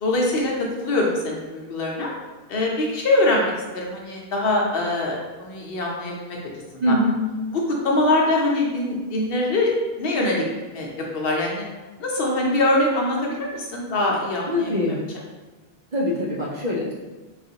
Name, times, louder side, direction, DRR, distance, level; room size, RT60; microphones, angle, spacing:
voice 1, 0.0-2.1 2.5-6.4 6.7-7.0 7.5-9.7 10.0-10.4 10.7-11.7 12.0-15.0, left 2 dB, 65° left, -2 dB, 0.8 m, -23 dB
voice 2, 6.8-7.2 14.5-15.0 15.9-16.9, left 1 dB, 50° right, -4 dB, 0.6 m, -23 dB
3.8 x 2.4 x 2.7 m, 1.2 s
omnidirectional pair, 1.1 m